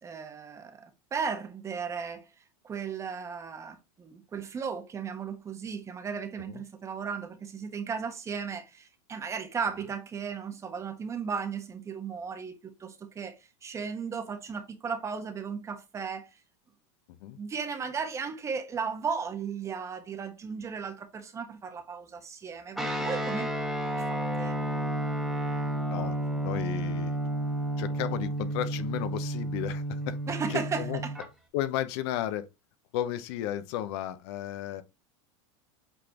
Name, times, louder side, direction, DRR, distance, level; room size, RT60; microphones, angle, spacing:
voice 1, 0.0-2.3 2.6-12.5 12.8-16.3 17.4-23.5 24.0-24.5 30.3-31.1, right 6 dB, 20° right, 1.2 m, -35 dB
Guitar, 22.8-31.3, right 1 dB, ahead, 1.5 m, -31 dB
voice 2, 25.9-27.2 27.8-30.2 30.5-31.0 31.5-32.5 32.9-34.8, left 12 dB, 60° left, 0.8 m, -33 dB
8.1 x 4.2 x 2.9 m
supercardioid pair, 150°, 16 cm